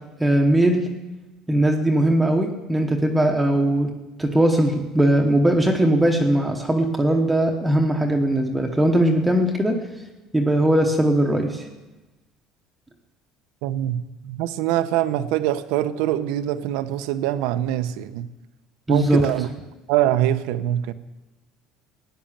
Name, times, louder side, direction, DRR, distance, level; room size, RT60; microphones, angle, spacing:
voice 1, 0.2-0.9 1.5-3.9 4.2-9.8 10.3-11.7 18.9-19.2, right 1 dB, 5° right, 1.0 m, -19 dB
voice 2, 13.6-18.3 18.9-19.5 19.9-20.9, right 12 dB, 80° right, 0.8 m, -24 dB
16.0 x 10.0 x 7.4 m
cardioid pair, 175°, 0 cm